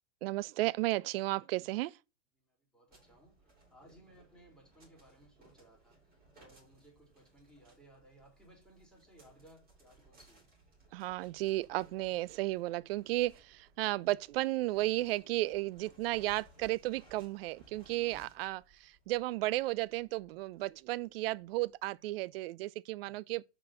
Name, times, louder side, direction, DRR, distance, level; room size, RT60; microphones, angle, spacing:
voice 1, 0.2-2.0 10.9-23.5, right 18 dB, 55° right, 0.5 m, -34 dB
voice 2, 2.4-10.4 18.1-18.3 23.0-23.4, right 1 dB, ahead, 3.9 m, -61 dB
sound 1, 2.9-21.6, right 3 dB, 25° right, 3.9 m, -63 dB
6.0 x 4.4 x 6.5 m
hypercardioid pair, 120°, 36 cm